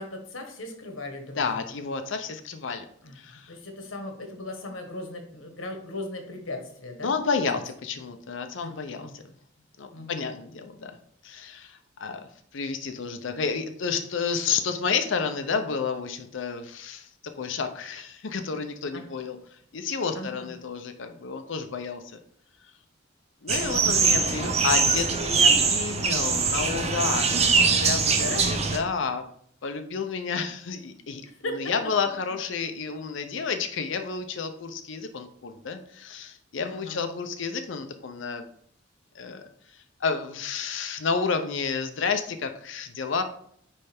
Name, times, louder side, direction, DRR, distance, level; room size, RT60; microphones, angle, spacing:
voice 1, 0.0-1.7 3.0-3.2 3.5-7.1 8.6-8.7 9.0-9.2 9.9-10.3 18.9-19.1 20.1-20.5 23.9-24.0 28.1-28.4 31.4-31.6 36.6-37.0, left 2 dB, 85° left, 4 dB, 1.4 m, -37 dB
voice 2, 1.4-2.8 3.2-3.5 7.0-9.2 9.8-10.9 11.2-12.3 12.5-17.1 17.4-19.4 19.7-22.0 23.4-29.2 29.6-31.2 31.5-38.5 39.1-39.4 40.0-43.2, left 5 dB, 65° left, 7 dB, 0.6 m, -30 dB
sound 1, 23.5-28.8, right 4 dB, 35° right, 0.8 m, -22 dB
9.7 x 3.3 x 3.5 m, 0.64 s
head